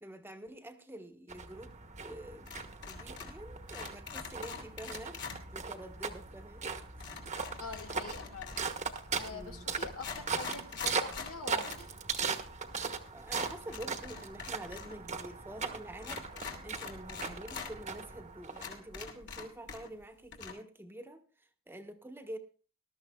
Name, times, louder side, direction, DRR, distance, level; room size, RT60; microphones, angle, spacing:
voice 1, 0.0-2.5 2.8-6.6 7.0-7.1 7.7-7.8 9.3-9.7 13.1-16.3 16.6-21.3 21.7-22.4, right 1 dB, 10° right, 1.2 m, -47 dB
sound 1, 1.3-19.0, right 5 dB, 35° right, 1.2 m, -39 dB
sound 2, 2.5-3.4 3.7-5.4 7.0-8.8 9.4-9.5 9.9-11.8 12.2-12.3 13.3-14.9 15.2-15.3 16.0-17.7 18.2-18.3 18.5-20.0 20.3-20.5, left 5 dB, 60° left, 2.7 m, -44 dB
voice 2, 7.6-8.6 9.1-11.9, left 4 dB, 80° left, 1.8 m, -44 dB
20.0 x 13.0 x 2.3 m
head